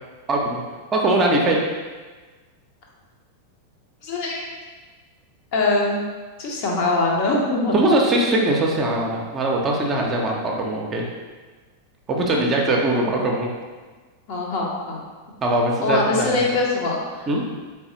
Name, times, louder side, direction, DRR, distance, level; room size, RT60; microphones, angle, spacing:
voice 1, 0.3-0.6 0.9-1.6 7.7-11.1 12.1-13.5 15.4-16.5 17.3-17.4, right 1 dB, 25° right, -1 dB, 0.6 m, -21 dB
voice 2, 4.0-4.4 5.5-6.0 6.4-7.7 14.3-15.0 15.8-17.3, left 2 dB, 45° left, -2 dB, 0.8 m, -22 dB
3.9 x 3.4 x 3.0 m, 1.4 s
figure-of-eight pair, 90°, 0 cm